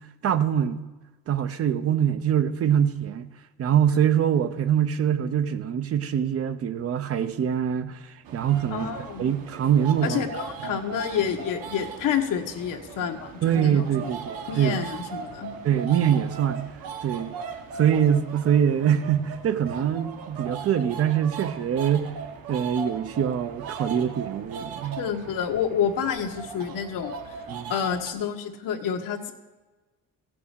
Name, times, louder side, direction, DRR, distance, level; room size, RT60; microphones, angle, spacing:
voice 1, 0.2-0.8 1.3-3.3 3.6-8.9 9.2-10.2 13.4-14.8 15.6-16.7 17.0-17.3 17.7-22.1 22.5-25.0 27.5-27.7, right 9 dB, 40° right, 0.7 m, -24 dB
sound 1, 8.2-28.1, right 6 dB, 80° right, 1.5 m, -39 dB
voice 2, 8.7-9.3 10.0-13.8 14.5-15.5 25.0-27.1 27.7-29.3, left 8 dB, 65° left, 1.3 m, -28 dB
14.5 x 6.1 x 8.1 m
cardioid pair, 165°, 34 cm